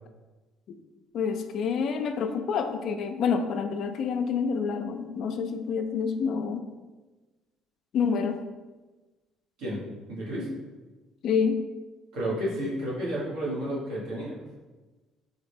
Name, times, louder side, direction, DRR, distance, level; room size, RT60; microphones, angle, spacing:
voice 1, 1.1-6.7 7.9-8.4 11.2-11.6, left 6 dB, 60° left, 7 dB, 0.3 m, -28 dB
voice 2, 10.1-10.5 12.1-14.4, equal, 75° right, -6 dB, 1.2 m, -31 dB
3.8 x 2.1 x 3.3 m, 1.2 s
cardioid pair, 100°, 0 cm